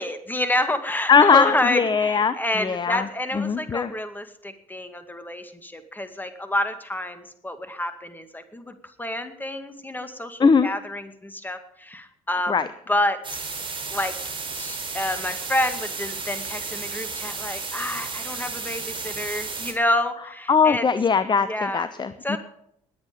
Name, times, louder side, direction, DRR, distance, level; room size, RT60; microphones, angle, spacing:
voice 1, 0.0-12.6 12.9-13.4 13.9-14.1 14.5-20.8 21.5-21.9 22.2-22.4, left 1 dB, 10° left, 10 dB, 2.2 m, -28 dB
voice 2, 1.1-3.9 10.4-10.7 12.5-12.7 20.5-22.4, left 5 dB, 25° left, 14 dB, 0.8 m, -20 dB
sound 1, 13.2-19.7, right 4 dB, 30° right, 4.6 m, -33 dB
20.5 x 8.5 x 5.3 m, 0.73 s
figure-of-eight pair, 50°, 17 cm